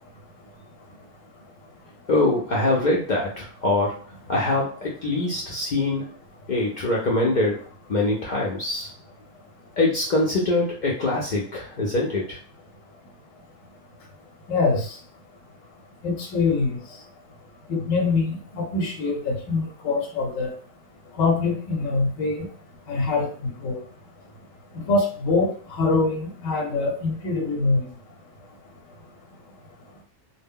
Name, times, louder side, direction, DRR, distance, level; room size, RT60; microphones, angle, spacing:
voice 1, 2.1-4.0 4.3-6.1 6.5-7.6 7.9-8.9 9.8-12.4, left 2 dB, 60° left, -4 dB, 0.5 m, -23 dB
voice 2, 14.5-14.9 16.0-16.8 17.7-20.5 21.2-22.5 22.9-23.8 24.7-27.8, left 3 dB, 90° left, 2 dB, 1.0 m, -24 dB
2.1 x 2.1 x 3.5 m, 0.42 s
omnidirectional pair, 1.3 m